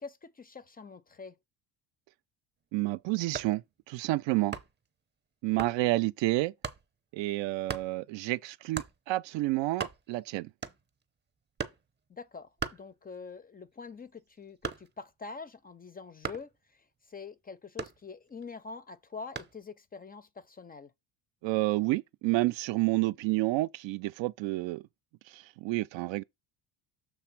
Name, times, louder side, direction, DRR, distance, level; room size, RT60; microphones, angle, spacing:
voice 1, 0.0-1.4 12.1-16.5 17.1-20.9, left 4 dB, 20° left, 0.4 m, -45 dB
voice 2, 2.7-4.6 5.4-6.5 7.1-10.5 21.4-24.8 25.3-26.2, right 19 dB, 70° right, 0.6 m, -30 dB
sound 1, 3.3-3.6 4.5-4.9 5.6-5.8 6.6-6.9 7.7-7.9 8.7-9.0 9.4-9.5 9.7-10.2 10.6-11.0 11.6-11.9 12.6-13.3 13.7-15.1 16.2-16.6 17.8-18.4 19.4-19.6, right 6 dB, 25° right, 0.8 m, -38 dB
6.8 x 3.3 x 5.9 m
cardioid pair, 120°, 46 cm